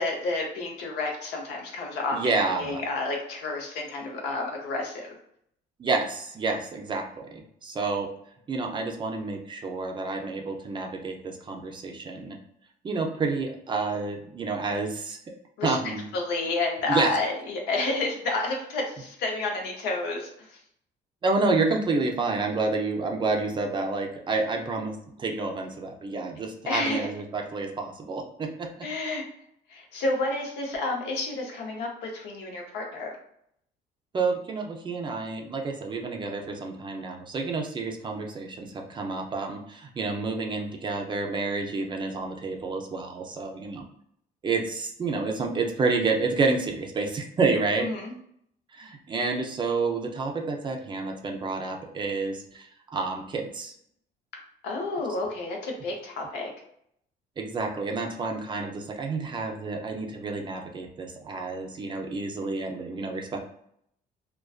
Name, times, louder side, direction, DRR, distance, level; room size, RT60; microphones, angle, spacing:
voice 1, 0.0-5.2 15.6-15.8 16.1-20.6 26.7-27.1 28.8-29.2 29.7-33.1 47.8-48.1 54.6-56.5, left 2 dB, 85° left, 1 dB, 0.7 m, -30 dB
voice 2, 2.1-2.8 5.8-8.1 8.5-12.4 12.8-15.2 15.6-16.0 16.9-17.1 21.2-28.9 34.1-43.8 44.4-47.9 48.7-52.7 52.9-53.7 57.4-63.4, right 3 dB, 30° right, 2 dB, 0.4 m, -29 dB
2.4 x 2.2 x 2.3 m, 0.71 s
cardioid pair, 110°, 17 cm